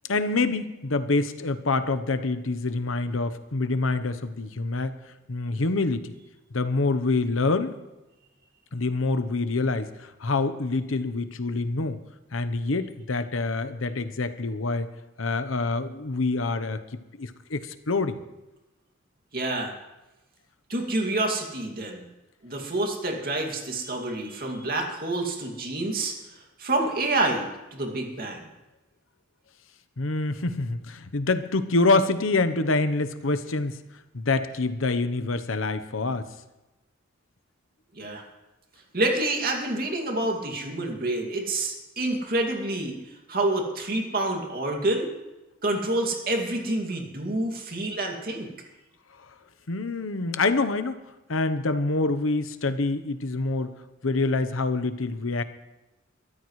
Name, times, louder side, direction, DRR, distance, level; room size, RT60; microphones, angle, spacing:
voice 1, 0.1-4.9 5.3-6.2 6.5-7.7 8.7-12.0 12.3-14.9 15.2-16.8 17.1-18.2 30.0-33.8 34.1-36.3 49.7-51.0 51.3-53.7 54.0-55.4, left 3 dB, 90° left, 11 dB, 0.9 m, -26 dB
voice 2, 19.3-19.7 20.7-22.0 22.4-28.5 37.9-38.2 38.9-45.1 45.6-48.5, right 2 dB, 50° right, 2 dB, 2.3 m, -28 dB
22.5 x 13.5 x 3.2 m, 1.0 s
head